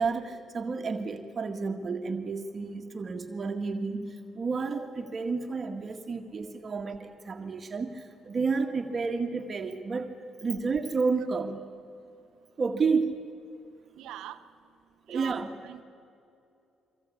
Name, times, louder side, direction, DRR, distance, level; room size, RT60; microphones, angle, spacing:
voice 1, 0.0-11.6 12.6-13.2 15.1-15.6, right 4 dB, 40° right, 5 dB, 1.8 m, -31 dB
voice 2, 13.9-14.4 15.1-15.8, right 12 dB, 90° right, 9 dB, 1.0 m, -42 dB
25.0 x 23.5 x 8.5 m, 2.6 s
cardioid pair, 90°, 0 cm